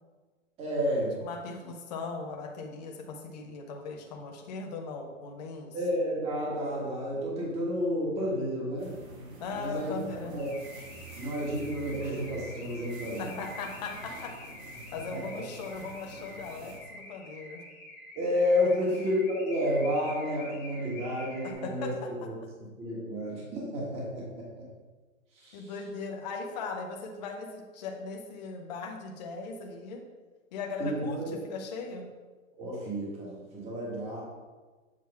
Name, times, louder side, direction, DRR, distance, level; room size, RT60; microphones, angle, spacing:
voice 1, 0.6-1.2 5.7-8.9 9.5-10.5 11.1-13.4 15.1-15.2 18.1-22.3 22.8-24.6 25.3-25.7 30.8-31.3 32.6-34.2, equal, 15° right, -4 dB, 1.4 m, -31 dB
voice 2, 1.2-5.8 9.4-10.4 13.2-14.3 14.9-17.6 21.4-22.1 25.5-30.0 30.5-32.1, left 4 dB, 30° left, 2 dB, 0.8 m, -39 dB
sound 1, 8.8-16.8, right 2 dB, 80° right, 1.9 m, -47 dB
Car / Alarm, 10.4-21.5, left 1 dB, 15° left, 1.4 m, -47 dB
7.6 x 3.0 x 5.8 m, 1.3 s
hypercardioid pair, 155°, 41 cm